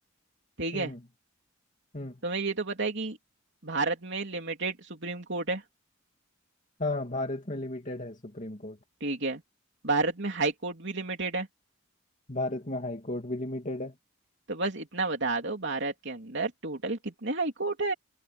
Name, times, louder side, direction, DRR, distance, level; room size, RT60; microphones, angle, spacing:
voice 1, 0.6-0.9 2.2-3.2 3.6-5.6 9.0-9.4 9.8-11.5 14.5-17.9, right 3 dB, 60° right, 3.3 m, -31 dB
voice 2, 6.8-8.8 12.3-13.9, left 2 dB, 35° left, 2.5 m, -34 dB
head